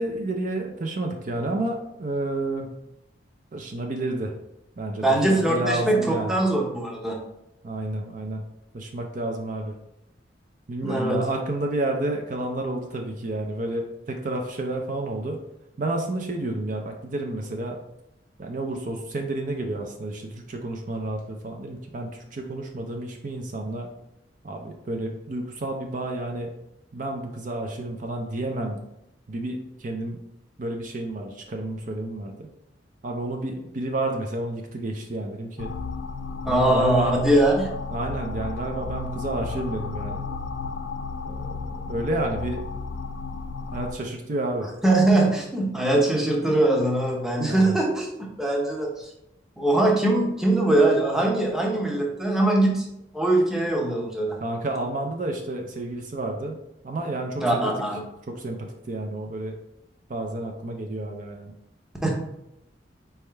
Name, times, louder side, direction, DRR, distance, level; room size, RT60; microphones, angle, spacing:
voice 1, 0.0-2.7 3.5-4.3 4.8-6.4 7.6-8.4 8.7-9.7 10.7-15.4 15.8-17.8 18.4-23.9 24.4-26.5 26.9-28.8 29.3-30.2 30.6-32.5 33.0-35.7 36.5-37.2 37.9-40.3 41.2-42.6 43.7-44.7 47.5-47.8 54.4-56.5 56.8-57.7 58.3-59.6 60.1-61.5, right 2 dB, 45° right, 3 dB, 0.5 m, -30 dB
voice 2, 5.0-7.2 10.8-11.3 36.5-37.7 44.8-49.0 49.6-52.8 53.1-54.4 57.4-58.0 62.0-62.1, right 1 dB, 5° right, -1 dB, 0.7 m, -22 dB
sound 1, 35.6-43.9, left 4 dB, 80° left, 0.4 m, -33 dB
4.3 x 3.5 x 3.3 m, 0.82 s
head